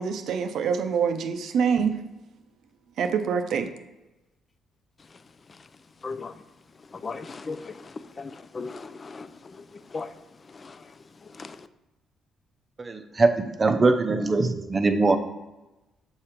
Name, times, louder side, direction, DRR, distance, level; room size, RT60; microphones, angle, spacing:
voice 1, 0.0-2.0 3.0-3.7, right 6 dB, 75° right, 0.5 m, -25 dB
voice 2, 7.0-7.7 8.2-9.3 9.9-10.1 11.4-11.5, left 4 dB, 35° left, 0.4 m, -35 dB
voice 3, 12.8-15.2, right 3 dB, 30° right, 0.6 m, -22 dB
7.1 x 2.9 x 5.0 m
cardioid pair, 90°, 0 cm